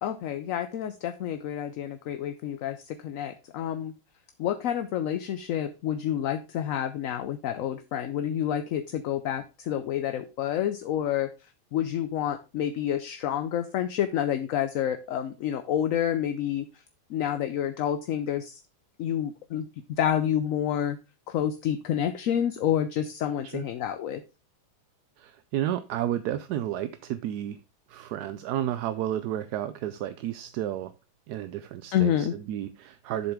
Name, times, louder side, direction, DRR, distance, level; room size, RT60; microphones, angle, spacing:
voice 1, 0.0-3.9 4.4-11.3 11.7-16.7 17.1-18.6 19.0-19.6 20.0-21.0 21.3-24.2 31.9-32.3, left 10 dB, 65° left, 0.9 m, -28 dB
voice 2, 25.2-27.6 27.9-30.9 31.3-33.3, right 11 dB, 80° right, 1.1 m, -32 dB
7.7 x 6.9 x 3.6 m
omnidirectional pair, 1.7 m